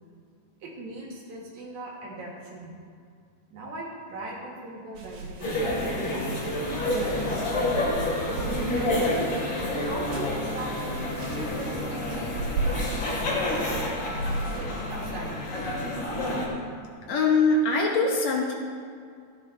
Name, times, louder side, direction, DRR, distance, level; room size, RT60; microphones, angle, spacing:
voice 1, 0.6-2.7 3.5-5.6 5.9-7.4 8.2-9.2 9.8-10.9 11.1-13.7 14.3-15.4, right 2 dB, 65° right, -3 dB, 3.1 m, -40 dB
sound 1, 5.0-14.6, right 2 dB, 85° right, 3.2 m, -37 dB
sound 2, 5.4-16.5, left 1 dB, 45° left, 3.2 m, -29 dB
voice 2, 17.1-18.5, left 3 dB, 65° left, -1 dB, 2.0 m, -22 dB
16.0 x 10.5 x 3.3 m, 2.2 s
omnidirectional pair, 3.8 m